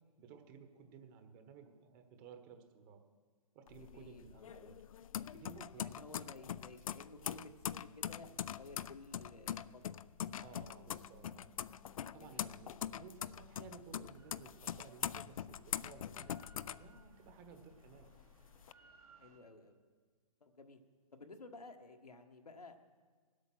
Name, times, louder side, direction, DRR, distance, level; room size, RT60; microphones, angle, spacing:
voice 1, 0.0-3.0 3.5-4.8 5.3-6.3 10.4-11.5 12.1-18.2, right 6 dB, 35° right, 7 dB, 1.4 m, -56 dB
sound 1, 3.7-17.5 17.9-18.7, left 10 dB, 65° left, 0.4 m, -43 dB
voice 2, 3.8-4.8 5.8-10.0 12.2-12.5 19.2-19.8 20.4-20.8 21.1-22.8, left 3 dB, 90° left, 5 dB, 1.4 m, -54 dB
Bass guitar, 10.6-16.9, left 1 dB, 35° left, 0.8 m, -70 dB
Drill, 14.2-19.4, right 4 dB, 80° right, 3.6 m, -66 dB
18.5 x 8.2 x 6.2 m, 1.5 s
hypercardioid pair, 130°, 19 cm